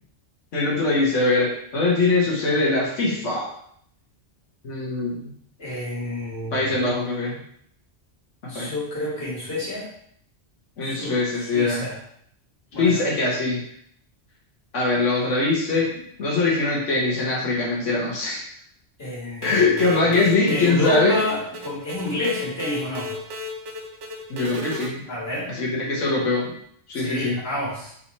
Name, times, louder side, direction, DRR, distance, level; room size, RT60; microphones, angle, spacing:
voice 1, 0.5-3.4 4.6-5.3 6.5-7.4 8.5-8.7 10.8-11.8 12.8-13.6 14.7-15.9 16.2-18.4 19.4-21.2 24.3-25.0 25.5-26.5 26.9-27.4, left 3 dB, 90° left, -4 dB, 1.4 m, -22 dB
voice 2, 5.6-6.8 8.5-9.9 10.8-11.2 11.5-12.0 12.7-13.0 19.0-19.6 20.1-23.2 25.1-25.5 26.9-27.9, left 1 dB, 55° left, -7 dB, 2.1 m, -29 dB
sound 1, 19.4-24.9, left 2 dB, 75° right, 1.0 m, -35 dB
3.8 x 3.0 x 4.1 m, 0.68 s
omnidirectional pair, 1.2 m